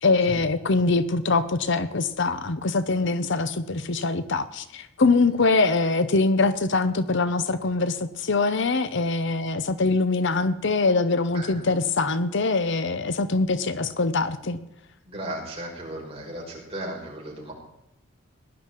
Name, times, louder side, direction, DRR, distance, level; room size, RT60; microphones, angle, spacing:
voice 1, 0.0-14.6, left 3 dB, 60° left, 12 dB, 0.8 m, -23 dB
voice 2, 15.1-17.5, right 1 dB, 30° right, -3 dB, 5.8 m, -35 dB
18.5 x 11.5 x 4.6 m, 0.84 s
head